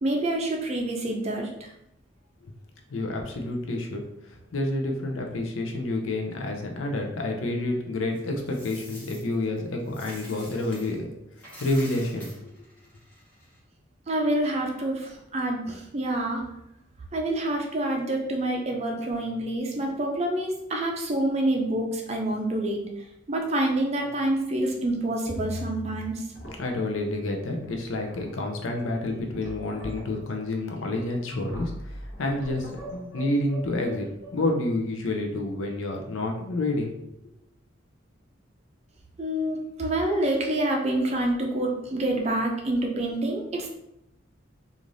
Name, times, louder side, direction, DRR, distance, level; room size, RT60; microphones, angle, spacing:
voice 1, 0.0-1.7 14.1-16.5 17.1-22.9 23.3-26.2 39.2-43.7, right 1 dB, 30° right, 2 dB, 0.4 m, -27 dB
voice 2, 2.9-4.0 4.3-11.1 11.6-12.5 26.6-34.1 34.3-36.9, left 2 dB, 80° left, 2 dB, 0.5 m, -29 dB
Coin (dropping), 8.1-11.0 11.3-13.6, equal, 10° left, 1.0 m, -47 dB
sound 1, 24.0-24.3 24.7-24.8 25.3-26.1 26.3-26.9 27.7-27.8 28.0-28.4 28.9-34.5, left 1 dB, 55° left, 1.1 m, -39 dB
3.2 x 2.5 x 2.6 m, 0.83 s
head